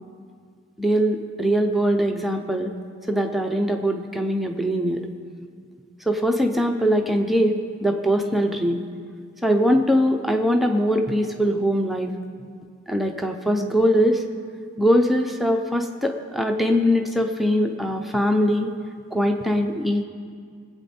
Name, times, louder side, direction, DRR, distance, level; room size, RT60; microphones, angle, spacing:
voice 1, 0.8-2.7 3.1-5.0 6.1-8.8 9.4-12.1 12.9-14.2 14.8-18.7 19.1-20.0, equal, ahead, 3 dB, 0.6 m, -21 dB
20.0 x 8.2 x 4.3 m, 2.1 s
head